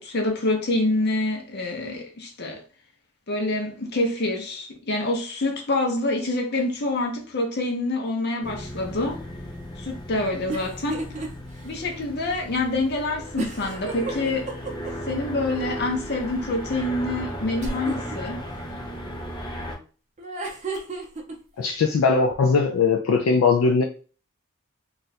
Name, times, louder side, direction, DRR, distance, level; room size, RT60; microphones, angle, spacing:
voice 1, 0.0-2.6 3.3-9.2 9.8-11.1 11.6-14.5 15.1-18.4, left 2 dB, 50° left, 0.8 m, -26 dB
sound 1, 8.4-19.7, equal, 20° left, 0.9 m, -36 dB
sound 2, 10.5-11.3 11.7-11.8 13.4-15.1 17.6-18.2 20.2-21.3, right 3 dB, 35° right, 0.6 m, -32 dB
voice 2, 21.6-23.8, left 4 dB, 75° left, 0.4 m, -20 dB
2.5 x 2.2 x 4.0 m
head